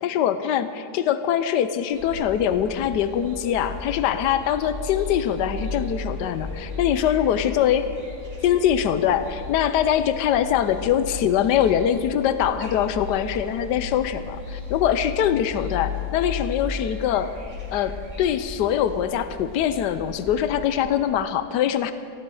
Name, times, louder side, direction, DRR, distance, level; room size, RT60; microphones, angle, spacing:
voice 1, 0.0-8.0 8.4-17.4 17.7-21.9, left 9 dB, 80° left, 11 dB, 1.3 m, -23 dB
sound 1, 1.9-20.8, left 4 dB, 90° right, 3.4 m, -35 dB
19.5 x 15.5 x 4.7 m, 2.5 s
omnidirectional pair, 1.8 m